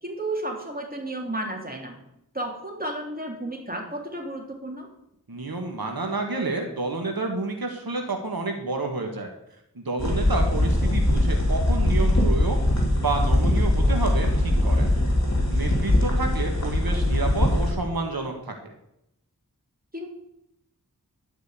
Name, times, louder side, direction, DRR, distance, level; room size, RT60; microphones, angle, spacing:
voice 1, 0.0-2.0 2.3-4.9 16.0-16.1 19.9-20.1, right 1 dB, 25° right, 0 dB, 3.1 m, -32 dB
voice 2, 5.3-9.3 9.7-14.9 15.5-18.7, right 3 dB, 90° right, 3 dB, 1.5 m, -29 dB
sound 1, 10.0-17.7, left 1 dB, 50° left, 3.1 m, -21 dB
12.5 x 5.2 x 8.2 m, 0.81 s
wide cardioid pair, 40°, 35 cm